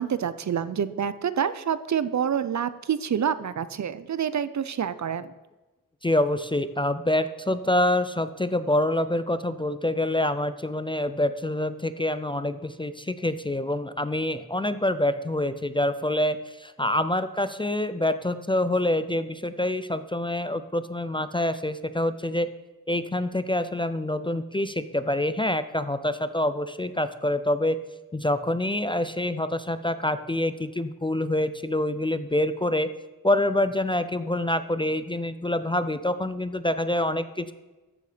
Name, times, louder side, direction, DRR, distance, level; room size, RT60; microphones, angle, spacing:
voice 1, 0.0-5.3, right 8 dB, 55° right, 14 dB, 0.6 m, -27 dB
voice 2, 6.0-22.5 22.9-27.8 28.1-32.9 33.2-37.5, left 1 dB, 15° left, 11 dB, 0.4 m, -26 dB
13.5 x 6.7 x 5.0 m, 1.2 s
wide cardioid pair, 105°, 35 cm